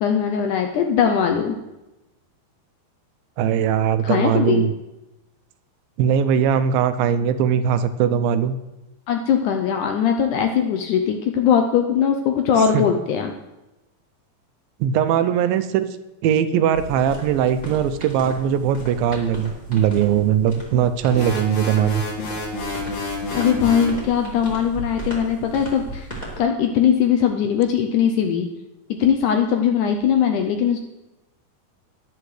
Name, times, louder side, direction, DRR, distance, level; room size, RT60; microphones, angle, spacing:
voice 1, 0.0-1.6 4.0-4.7 9.1-13.3 23.3-26.1 26.4-28.5 28.9-30.8, left 8 dB, 80° left, 5 dB, 1.8 m, -20 dB
voice 2, 3.4-4.7 6.0-8.6 12.7-12.8 14.8-15.9 16.2-22.0, right 9 dB, 80° right, 11 dB, 2.3 m, -20 dB
sound 1, 16.7-26.4, right 1 dB, 15° left, 2.0 m, -36 dB
sound 2, 21.1-24.0, left 2 dB, 55° left, 3.0 m, -29 dB
13.0 x 10.5 x 3.2 m, 0.99 s
omnidirectional pair, 4.2 m